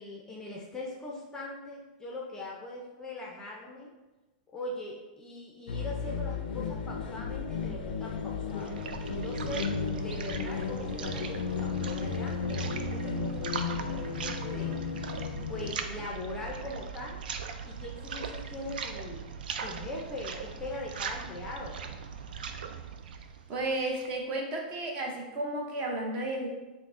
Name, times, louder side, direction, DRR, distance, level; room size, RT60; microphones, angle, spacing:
voice 1, 0.0-3.9 4.5-8.8 9.2-9.7 10.0-14.8 15.5-17.2 17.6-19.3 19.6-21.8, left 2 dB, 10° left, -3 dB, 0.5 m, -41 dB
sound 1, 5.7-15.7, left 6 dB, 90° left, 0.4 m, -34 dB
sound 2, 8.2-24.2, right 6 dB, 90° right, 0.3 m, -39 dB
voice 2, 23.5-26.5, right 2 dB, 30° right, 0 dB, 0.6 m, -33 dB
5.6 x 2.0 x 2.5 m, 1.1 s
supercardioid pair, 150°, 5 cm